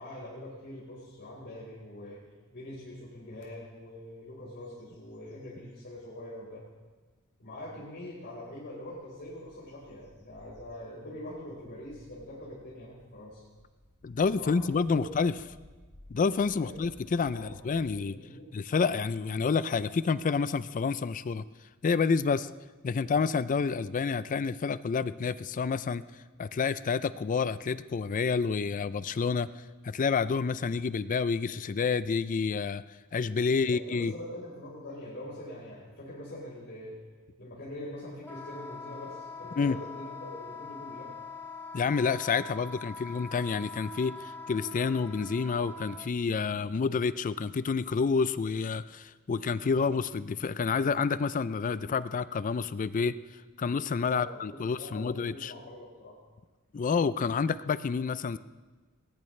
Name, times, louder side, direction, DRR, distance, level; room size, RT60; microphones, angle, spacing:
voice 1, 0.0-2.2 2.5-6.6 7.4-13.4 14.4-15.1 16.6-16.7 17.3-18.5 33.6-36.9 37.4-41.1 54.1-56.1, left 1 dB, 55° left, -8 dB, 4.3 m, -44 dB
sound 1, 3.4-3.5 4.0-4.3 4.6-6.1 6.7-6.8 8.5-17.9, equal, 70° left, 3.3 m, -58 dB
voice 2, 14.0-15.3 16.1-18.2 18.5-21.4 21.8-22.5 22.8-26.0 26.4-29.5 29.8-32.8 33.1-34.1 39.6-39.8 41.7-53.2 53.6-55.5 56.7-58.4, left 5 dB, 35° left, 15 dB, 0.4 m, -29 dB
Wind instrument woodwind instrument, 38.2-46.1, left 3 dB, 10° left, 1.3 m, -43 dB
20.0 x 19.0 x 3.2 m, 1.3 s
head